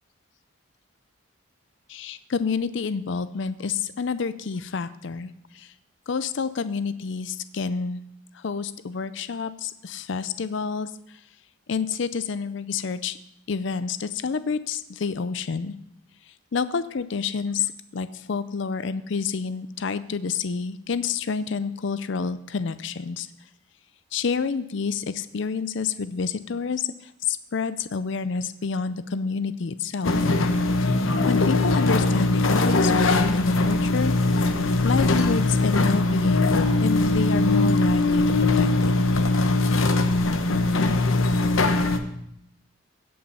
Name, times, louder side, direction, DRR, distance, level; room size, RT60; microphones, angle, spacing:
voice 1, 1.9-5.7 6.1-8.0 8.3-11.2 11.7-13.2 13.5-15.7 16.3-23.3 24.1-30.3 30.8-34.2 34.8-38.9, left 5 dB, 60° left, 13 dB, 0.5 m, -29 dB
sound 1, 30.0-42.0, left 2 dB, 75° left, 0.9 m, -21 dB
16.5 x 5.5 x 5.6 m, 0.78 s
head